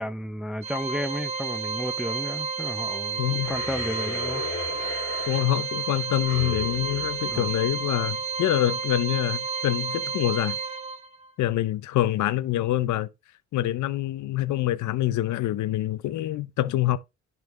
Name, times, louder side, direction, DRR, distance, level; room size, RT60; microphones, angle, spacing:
voice 1, 0.0-4.5 7.3-7.5, equal, ahead, 0.5 m, -32 dB
Organ, 0.6-11.3, right 5 dB, 20° right, 1.7 m, -31 dB
voice 2, 3.2-3.5 5.3-10.6 11.4-13.1 13.5-17.0, left 14 dB, 75° left, 0.7 m, -26 dB
sound 1, 3.4-8.1, left 5 dB, 60° left, 2.3 m, -37 dB
10.5 x 5.9 x 3.2 m
cardioid pair, 90°, 30 cm